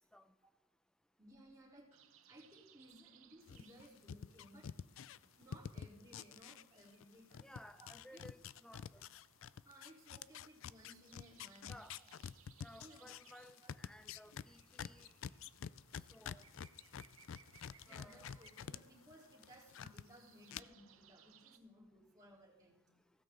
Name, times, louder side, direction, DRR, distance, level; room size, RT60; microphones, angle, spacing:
voice 1, 1.2-2.0 2.3-4.7 5.4-7.5 7.8-8.3 9.0-9.1 9.6-11.7 12.8-13.4 17.9-22.8, equal, 15° right, 3.7 m, -60 dB
sound 1, 1.9-21.6, right 8 dB, 75° right, 0.9 m, -68 dB
sound 2, 3.5-7.0 7.3-18.8 19.1-20.0 20.5-20.6, left 7 dB, 65° left, 0.4 m, -48 dB
voice 2, 7.4-9.0 11.7-12.0 12.6-15.1 16.1-16.4 17.9-18.3, left 1 dB, 5° left, 0.5 m, -58 dB
16.0 x 14.0 x 3.8 m
head